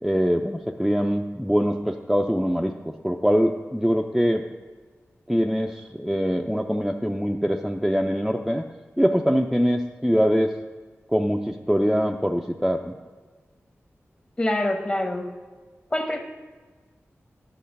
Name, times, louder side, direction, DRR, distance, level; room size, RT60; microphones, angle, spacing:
voice 1, 0.0-4.4 5.3-8.6 9.0-10.5 11.1-13.0, equal, ahead, 3 dB, 0.4 m, -23 dB
voice 2, 14.4-15.2 15.9-16.2, left 1 dB, 25° left, 4 dB, 1.0 m, -25 dB
10.0 x 6.4 x 5.2 m, 1.4 s
wide cardioid pair, 85°, 5 cm